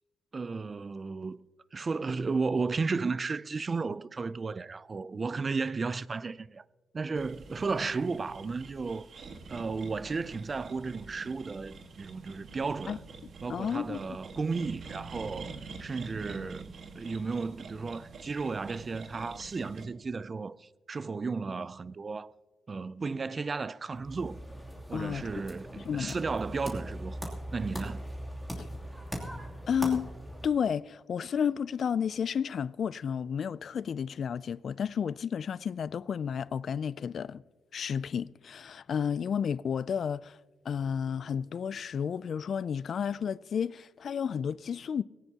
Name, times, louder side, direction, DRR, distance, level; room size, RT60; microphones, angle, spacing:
voice 1, 0.3-1.5 1.7-6.6 6.9-9.1 9.5-13.0 13.4-15.5 15.8-22.3 22.7-24.4 24.9-28.0, right 4 dB, 30° right, 0.4 m, -34 dB
sound 1, 7.2-19.8, right 4 dB, 55° right, 1.5 m, -46 dB
voice 2, 13.5-14.1 24.9-25.2 25.9-26.1 28.6-28.7 29.7-30.1 30.4-37.4 37.7-40.4 40.7-45.0, left 7 dB, 55° left, 0.3 m, -32 dB
sound 2, 23.9-30.5, equal, 5° right, 2.8 m, -40 dB
19.0 x 17.5 x 2.8 m
cardioid pair, 120°, 0 cm